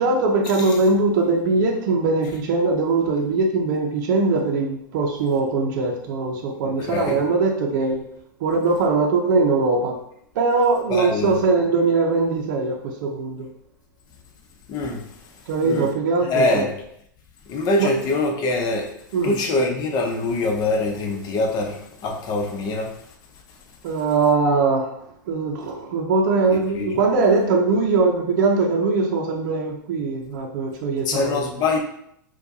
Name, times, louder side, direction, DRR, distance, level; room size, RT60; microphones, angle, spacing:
voice 1, 0.0-8.0 8.4-10.0 10.4-13.5 15.5-16.7 17.8-17.9 19.1-19.4 23.8-24.9 25.3-31.4, right 3 dB, 60° right, 0 dB, 0.6 m, -21 dB
voice 2, 6.8-7.2 10.9-11.4 14.7-15.0 15.6-15.9 16.2-16.7 17.5-18.9 19.2-22.9 26.7-26.9 31.1-31.8, left 2 dB, 40° left, 2 dB, 0.8 m, -23 dB
4.3 x 2.3 x 2.6 m, 0.71 s
hypercardioid pair, 110°, 11 cm